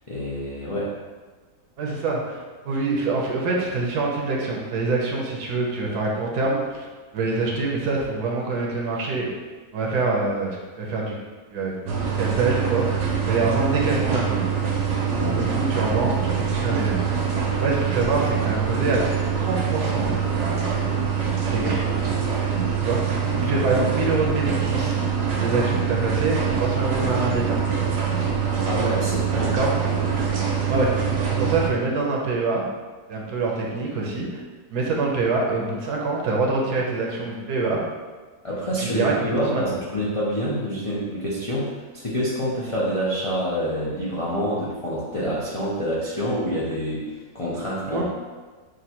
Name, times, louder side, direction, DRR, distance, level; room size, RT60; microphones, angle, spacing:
voice 1, 0.1-0.9 15.2-15.5 23.5-23.7 28.6-29.6 29.9-30.1 38.4-47.1 47.3-48.0, equal, 55° left, -8 dB, 0.3 m, -27 dB
voice 2, 1.8-6.9 7.1-9.3 9.7-10.5 10.8-11.1 11.5-13.0 13.3-14.4 15.1-17.0 17.6-19.0 19.3-20.1 20.3-20.7 21.5-21.7 22.8-24.9 25.3-27.6 29.5-29.7 30.7-31.0 31.3-32.6 33.1-34.3 34.7-37.8 38.8-39.6 47.9-48.0, right 3 dB, 75° right, -2 dB, 1.3 m, -25 dB
sound 1, 11.9-31.7, right 6 dB, 60° right, 0.9 m, -24 dB
6.3 x 2.2 x 2.9 m, 1.4 s
omnidirectional pair, 1.7 m